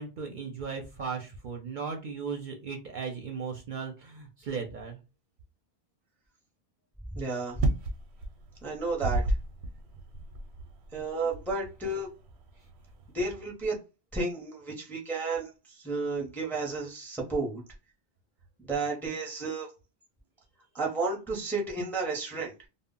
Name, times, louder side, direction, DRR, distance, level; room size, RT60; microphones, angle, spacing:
voice 1, 0.0-5.0, right 5 dB, 60° right, 2 dB, 0.6 m, -37 dB
voice 2, 7.1-7.7 8.6-9.2 10.9-12.1 13.1-13.8 14.1-17.6 18.7-19.7 20.7-22.5, right 3 dB, ahead, -1 dB, 0.5 m, -32 dB
sound 1, 7.5-13.0, right 2 dB, 90° right, 0.9 m, -33 dB
2.0 x 2.0 x 3.6 m, 0.29 s
omnidirectional pair, 1.1 m